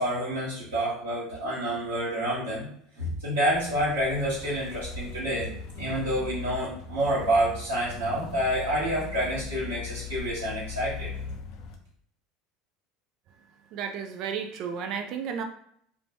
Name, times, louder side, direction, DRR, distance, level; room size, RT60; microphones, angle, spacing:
voice 1, 0.0-2.7 3.0-5.5 5.7-11.1, right 1 dB, 80° right, -10 dB, 1.3 m, -28 dB
sound 1, 3.5-11.8, left 5 dB, 55° left, 0.4 m, -40 dB
voice 2, 13.7-15.4, right 7 dB, 55° right, 5 dB, 0.4 m, -33 dB
2.6 x 2.2 x 3.1 m, 0.66 s
figure-of-eight pair, 70°, 0 cm